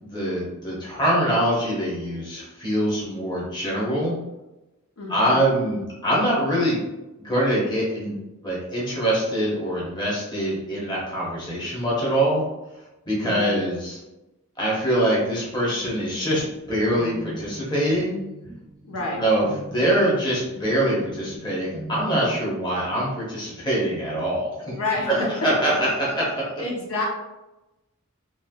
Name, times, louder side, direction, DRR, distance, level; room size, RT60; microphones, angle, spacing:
voice 1, 0.0-4.2 5.1-6.8 7.2-8.1 8.4-12.4 13.1-14.0 14.6-18.2 19.2-24.8 25.1-26.6, right 1 dB, 20° left, -6 dB, 0.9 m, -24 dB
voice 2, 5.0-5.5 13.2-13.6 18.8-19.2 24.7-25.3 26.6-27.1, left 2 dB, 80° left, -2 dB, 0.7 m, -29 dB
sound 1, 15.5-22.4, right 2 dB, 20° right, 0.3 m, -40 dB
3.2 x 2.9 x 2.3 m, 1.0 s
head